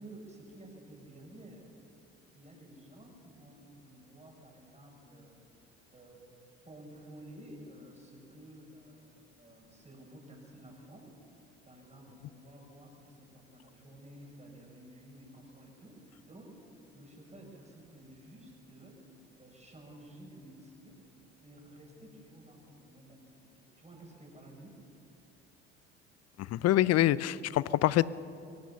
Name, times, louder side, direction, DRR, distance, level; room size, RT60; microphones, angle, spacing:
voice 1, 0.0-1.7 2.3-5.4 5.9-6.2 6.6-11.2 11.6-16.6 16.9-19.1 19.4-21.0 21.4-24.7, right 1 dB, 20° right, 0 dB, 6.3 m, -52 dB
voice 2, 26.4-28.1, left 14 dB, 45° left, 20 dB, 0.7 m, -25 dB
22.5 x 18.5 x 6.9 m, 2.5 s
figure-of-eight pair, 60°, 36 cm